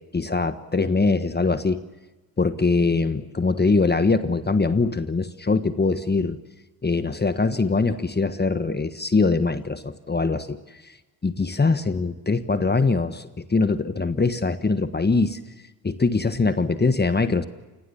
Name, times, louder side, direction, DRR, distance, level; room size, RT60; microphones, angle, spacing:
voice 1, 0.1-1.8 2.4-6.4 6.8-10.6 11.2-15.4 15.8-17.4, left 3 dB, 20° left, 11 dB, 1.4 m, -22 dB
28.0 x 21.0 x 7.1 m, 1.1 s
hypercardioid pair, 50°, 45 cm